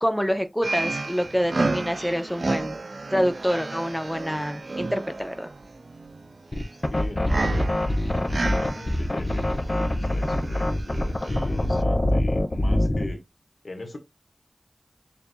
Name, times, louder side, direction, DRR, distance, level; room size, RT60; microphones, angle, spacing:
voice 1, 0.0-2.8 3.1-5.5, equal, 5° left, 0.8 m, -26 dB
sound 1, 0.6-11.8, right 3 dB, 75° right, 0.4 m, -32 dB
sound 2, 6.5-13.2, left 1 dB, 45° left, 0.8 m, -24 dB
voice 2, 6.7-7.7 8.2-13.2 13.6-14.0, left 2 dB, 90° left, 1.4 m, -40 dB
6.9 x 2.7 x 2.3 m
wide cardioid pair, 45°, 0 cm